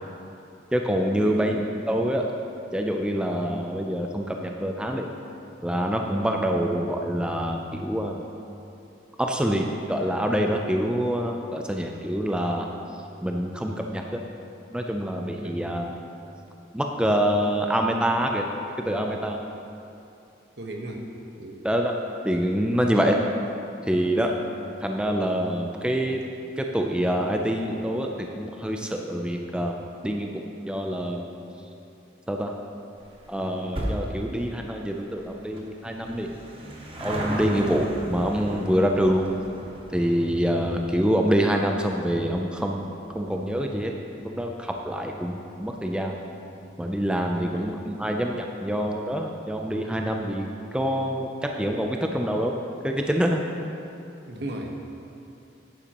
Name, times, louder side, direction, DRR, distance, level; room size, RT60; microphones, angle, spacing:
voice 1, 0.7-1.6 1.9-2.3 2.7-5.1 5.6-8.2 9.2-12.7 13.2-14.2 14.7-15.9 16.7-19.4 21.6-21.9 22.2-23.2 23.9-24.3 24.8-26.2 26.6-28.1 28.4-29.8 30.0-31.3 32.3-32.5 33.3-36.3 37.0-39.3 39.9-43.9 44.2-46.2 46.8-51.3 51.6-52.6 52.8-53.4, equal, 5° right, 2 dB, 0.4 m, -26 dB
voice 2, 1.2-1.5 15.4-15.7 20.6-21.0 21.3-21.6 47.4-47.7 54.3-54.8, right 1 dB, 65° right, 1 dB, 1.1 m, -36 dB
sound 1, 33.0-45.7 46.0-46.1 47.0-47.1 47.3-47.4 47.7-47.8, right 1 dB, 30° right, 1.0 m, -37 dB
11.0 x 9.6 x 3.0 m, 2.7 s
head